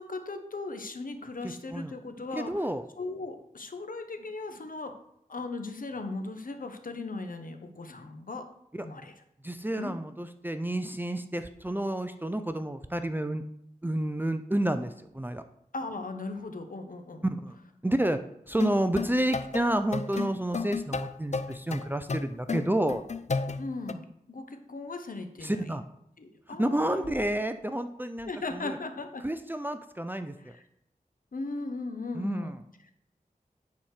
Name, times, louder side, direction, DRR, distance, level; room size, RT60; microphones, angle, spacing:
voice 1, 0.0-2.7 3.0-4.9 5.3-8.5 8.8-9.2 9.8-9.9 15.7-17.3 23.6-25.8 26.2-27.1 28.3-29.2 30.4-30.6 31.3-32.9, left 3 dB, 65° left, 6 dB, 1.1 m, -38 dB
voice 2, 2.3-2.8 8.7-8.8 9.4-13.4 13.8-15.4 17.2-17.6 17.8-18.2 18.5-23.0 25.4-25.8 26.6-28.8 29.2-30.5 32.1-32.5, right 1 dB, 15° right, 9 dB, 0.6 m, -30 dB
sound 1, 18.6-23.9, left 4 dB, 50° left, 0.5 m, -33 dB
9.5 x 4.3 x 6.5 m, 0.76 s
wide cardioid pair, 65°, 15 cm